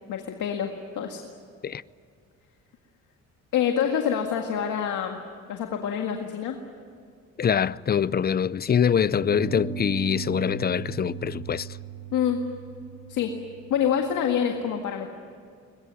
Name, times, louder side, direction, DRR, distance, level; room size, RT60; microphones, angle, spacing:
voice 1, 0.1-1.2 3.5-5.2 5.5-6.6 12.1-12.4 13.1-13.3 13.7-15.1, left 8 dB, 80° left, 1.9 m, -26 dB
voice 2, 7.4-11.7, left 8 dB, 30° left, 0.6 m, -24 dB
sound 1, 7.4-8.7 9.2-14.4, right 7 dB, 80° right, 6.4 m, -38 dB
21.5 x 21.5 x 9.7 m
cardioid pair, 90°, 30 cm